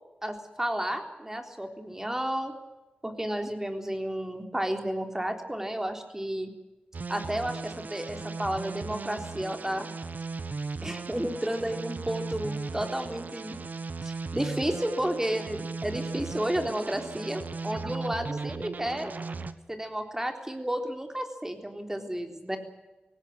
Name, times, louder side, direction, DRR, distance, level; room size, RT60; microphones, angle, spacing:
voice 1, 0.2-2.5 3.0-6.5 7.1-9.9 10.8-13.6 14.0-19.1 19.7-22.6, right 1 dB, 15° right, 5 dB, 3.8 m, -32 dB
sound 1, 6.9-19.5, right 4 dB, 60° right, 1.3 m, -37 dB
18.5 x 17.0 x 9.9 m, 1.1 s
cardioid pair, 50°, 3 cm